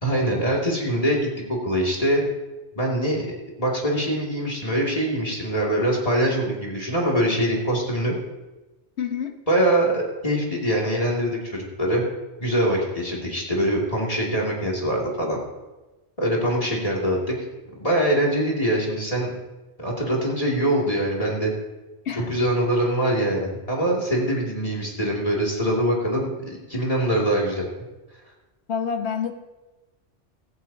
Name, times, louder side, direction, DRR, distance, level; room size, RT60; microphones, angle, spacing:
voice 1, 0.0-2.2 2.8-3.3 3.6-8.1 9.5-12.1 12.4-15.4 16.2-17.3 17.8-19.3 19.8-21.5 22.1-27.6, right 1 dB, 30° left, -2 dB, 2.7 m, -23 dB
voice 2, 9.0-9.4 22.0-22.3 28.7-29.3, left 7 dB, 70° left, 6 dB, 1.4 m, -27 dB
16.5 x 15.0 x 2.8 m, 1.1 s
omnidirectional pair, 1.2 m